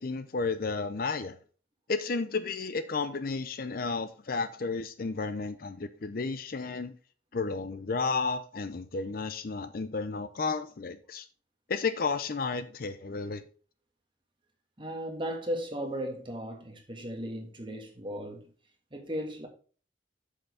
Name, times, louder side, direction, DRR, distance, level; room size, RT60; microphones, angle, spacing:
voice 1, 0.0-1.4 1.9-6.9 7.3-11.3 11.7-13.4, left 4 dB, 50° left, 0.5 m, -32 dB
voice 2, 14.8-18.5 18.9-19.5, equal, 25° right, 1.7 m, -36 dB
7.9 x 6.4 x 3.4 m
head